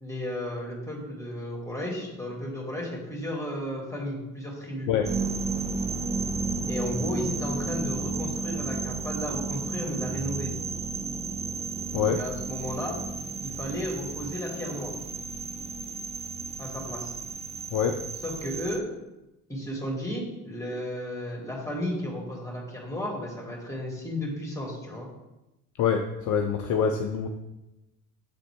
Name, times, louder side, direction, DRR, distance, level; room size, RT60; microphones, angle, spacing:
voice 1, 0.0-4.9 6.7-10.5 12.0-13.0 13.4-14.9 16.6-17.1 18.2-18.8 19.5-25.1, left 1 dB, 5° left, -2 dB, 2.2 m, -33 dB
sound 1, 5.0-18.8, right 4 dB, 15° right, 0.4 m, -33 dB
voice 2, 25.8-27.3, left 7 dB, 45° left, 5 dB, 0.5 m, -25 dB
7.5 x 3.8 x 3.4 m, 0.96 s
figure-of-eight pair, 50°, 43 cm